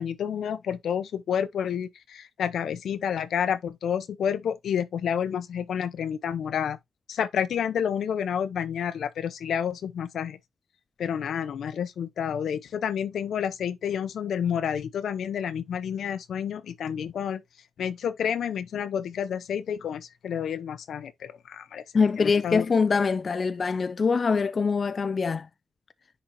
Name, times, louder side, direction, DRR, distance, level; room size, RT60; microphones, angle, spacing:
voice 1, 0.0-6.8 7.1-10.4 11.0-17.4 17.8-21.8 22.2-22.7, left 8 dB, 85° left, 0.7 m, -29 dB
voice 2, 21.9-25.5, left 5 dB, 45° left, 0.4 m, -24 dB
10.0 x 4.0 x 3.0 m
cardioid pair, 85°, 0 cm